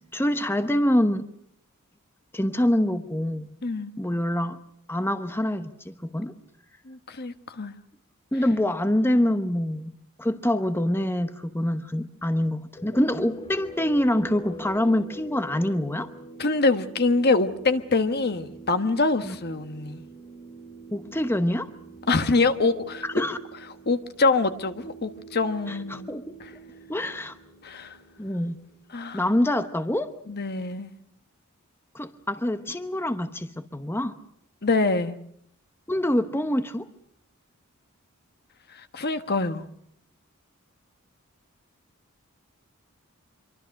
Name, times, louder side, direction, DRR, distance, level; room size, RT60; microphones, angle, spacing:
voice 1, 0.1-1.2 2.3-3.6 4.0-4.6 4.9-6.3 8.3-9.9 10.2-16.1 19.2-19.4 20.9-21.7 23.0-23.4 25.7-26.4 26.9-27.3 28.2-28.6 29.1-30.1 31.9-34.1 35.9-36.9, left 1 dB, 10° left, 1.0 m, -25 dB
voice 2, 3.6-3.9 6.9-7.7 16.4-20.0 22.1-23.2 23.9-26.1 27.6-27.9 28.9-29.2 30.3-30.9 34.6-35.2 38.8-39.6, left 3 dB, 50° left, 1.3 m, -25 dB
sound 1, 12.8-29.1, right 1 dB, 25° left, 3.9 m, -45 dB
26.0 x 24.0 x 6.5 m
head